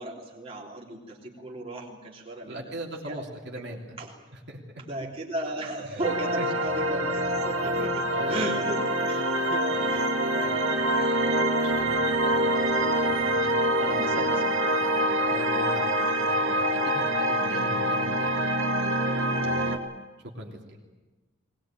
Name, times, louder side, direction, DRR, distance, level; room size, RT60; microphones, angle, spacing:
voice 1, 0.0-2.7 3.0-3.2 3.7-4.1 4.8-8.0 8.3-9.6 9.9-10.1 10.6-10.8 13.8-14.5 17.4-17.7 19.4-19.8, right 1 dB, 30° right, -2 dB, 3.4 m, -36 dB
voice 2, 2.4-4.0 4.3-4.6 5.8-6.0 6.4-6.5 6.8-6.9 8.1-8.4 9.7-10.0 10.4-13.7 14.1-14.5 15.1-18.5 20.3-20.8, right 1 dB, 55° right, -1 dB, 3.3 m, -41 dB
sound 1, 6.0-19.8, right 1 dB, 85° right, 2.3 m, -25 dB
20.5 x 20.5 x 9.0 m, 1.2 s
head